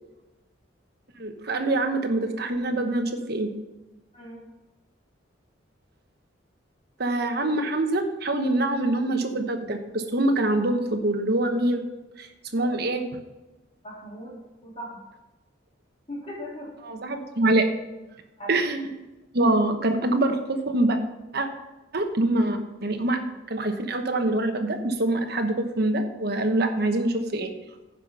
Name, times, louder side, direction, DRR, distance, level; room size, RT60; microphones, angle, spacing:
voice 1, 1.2-3.5 7.0-11.8 12.2-12.3 12.5-13.0 16.8-17.7 18.5-18.8 19.3-21.0 21.3-21.5 21.9-23.2 23.5-27.5, right 2 dB, 55° right, 5 dB, 1.1 m, -24 dB
voice 2, 4.1-4.5 12.6-12.9 13.8-15.0 16.1-17.1 18.4-18.6, equal, 30° left, -5 dB, 3.7 m, -40 dB
9.9 x 5.7 x 5.5 m, 1.1 s
head